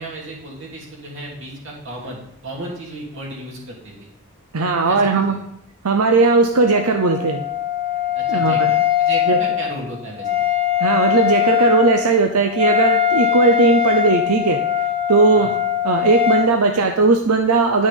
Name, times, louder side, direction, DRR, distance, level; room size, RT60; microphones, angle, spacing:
voice 1, 0.0-4.1 4.9-5.4 8.1-10.4 15.3-15.5, right 1 dB, 55° right, -3 dB, 2.9 m, -34 dB
voice 2, 4.5-5.4 5.8-7.4 8.3-8.7 9.3-9.4 10.8-14.6 15.1-15.5 15.8-17.9, right 3 dB, 85° right, 5 dB, 0.7 m, -17 dB
Wind instrument woodwind instrument, 6.5-16.5, left 10 dB, 25° right, 1.0 m, -21 dB
10.5 x 6.4 x 5.4 m, 0.78 s
head